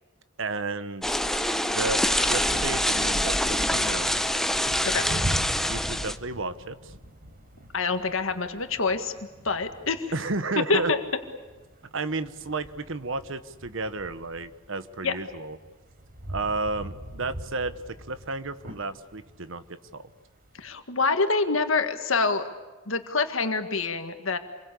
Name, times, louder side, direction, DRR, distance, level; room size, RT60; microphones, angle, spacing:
voice 1, 0.4-1.2 1.7-4.3 5.7-6.9 10.1-10.9 11.9-15.6 16.3-20.0, right 3 dB, 65° right, 12 dB, 1.2 m, -32 dB
sound 1, 1.0-6.2, left 1 dB, ahead, 0.8 m, -25 dB
sound 2, 1.9-20.8, right 1 dB, 45° right, 4.4 m, -42 dB
voice 2, 7.7-9.1 9.4-10.1 10.7-11.0 15.0-15.1 20.5-22.4 22.9-24.4, left 4 dB, 70° left, 7 dB, 1.8 m, -26 dB
27.5 x 22.5 x 8.4 m, 1.3 s
head